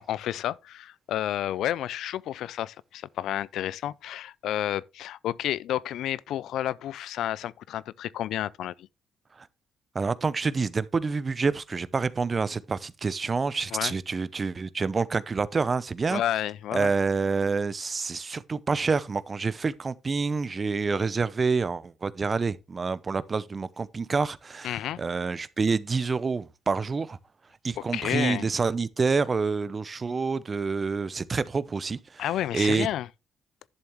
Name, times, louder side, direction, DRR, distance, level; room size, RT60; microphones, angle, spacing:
voice 1, 0.1-8.9 13.7-13.9 16.1-16.9 24.6-25.0 27.8-28.5 32.2-33.1, left 12 dB, 80° left, 0.3 m, -31 dB
voice 2, 9.9-16.2 16.7-27.2 27.6-32.2 32.5-32.9, right 4 dB, 35° right, 0.6 m, -27 dB
11.0 x 7.1 x 3.0 m
cardioid pair, 90°, 0 cm